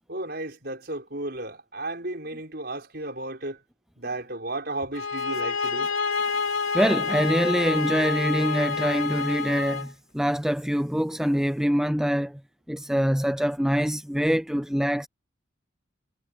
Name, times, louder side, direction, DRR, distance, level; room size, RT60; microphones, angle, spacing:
voice 1, 0.1-3.6 4.0-5.9, right 2 dB, 50° right, 6.0 m, -34 dB
sound 1, 4.9-9.9, left 5 dB, 75° left, 4.2 m, -28 dB
voice 2, 6.7-9.9 10.1-12.4 12.7-15.1, equal, 5° right, 0.5 m, -24 dB
head